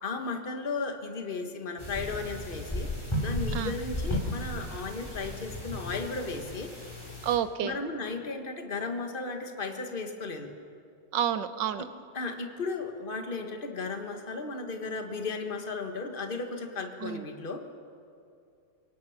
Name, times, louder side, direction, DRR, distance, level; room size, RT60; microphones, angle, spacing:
voice 1, 0.0-2.9 3.2-6.9 7.6-10.5 12.1-17.6, left 3 dB, 30° left, 5 dB, 1.6 m, -35 dB
sound 1, 1.8-7.4, left 1 dB, 15° left, 4.0 m, -35 dB
voice 2, 7.2-7.8 11.1-11.8 17.0-17.2, right 9 dB, 80° right, 12 dB, 1.6 m, -29 dB
28.5 x 18.5 x 5.8 m, 2.5 s
omnidirectional pair, 2.0 m